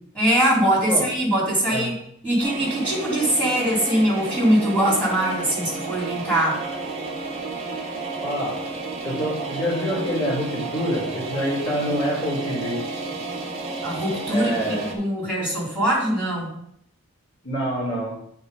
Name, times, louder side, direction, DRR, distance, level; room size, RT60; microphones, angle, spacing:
voice 1, 0.1-1.9 2.2-6.6 13.8-16.5, right 1 dB, 5° left, -6 dB, 3.0 m, -22 dB
sound 1, 2.4-14.9, right 3 dB, 30° right, 1.5 m, -31 dB
voice 2, 8.2-8.6 9.0-12.8 14.3-14.9 17.4-18.1, equal, 55° left, -10 dB, 3.9 m, -26 dB
8.9 x 4.4 x 5.3 m, 0.70 s
head